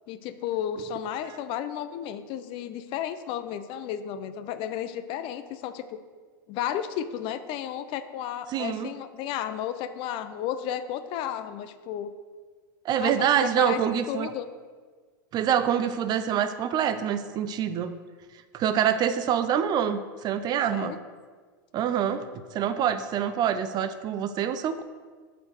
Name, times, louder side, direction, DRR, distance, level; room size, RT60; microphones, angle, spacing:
voice 1, 0.1-6.0 6.5-12.1 13.0-13.8 14.1-14.5 20.7-21.0, left 10 dB, 50° left, 11 dB, 0.6 m, -33 dB
voice 2, 8.5-8.9 12.8-14.3 15.3-17.9 18.5-20.9 21.7-22.2 22.5-24.8, right 9 dB, 40° right, 11 dB, 0.5 m, -26 dB
5.8 x 5.2 x 6.5 m, 1.5 s
hypercardioid pair, 105°, 11 cm